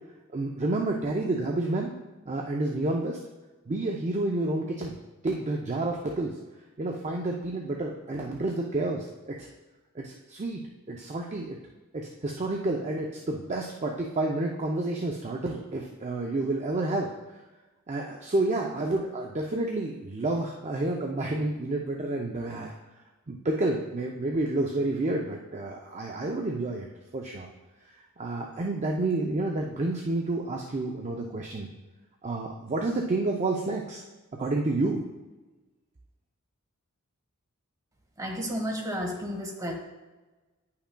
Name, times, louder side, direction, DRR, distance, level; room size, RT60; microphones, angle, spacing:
voice 1, 0.3-1.9 2.3-3.2 3.7-4.9 5.2-6.3 6.8-9.5 9.9-10.6 10.9-11.6 11.9-17.4 17.9-22.7 23.3-26.9 27.1-27.5 28.2-31.7 32.2-34.0 34.4-35.0, right 2 dB, 30° right, 0 dB, 0.5 m, -29 dB
voice 2, 38.2-39.7, equal, 15° right, 0 dB, 1.3 m, -32 dB
10.0 x 5.7 x 2.2 m, 1.2 s
head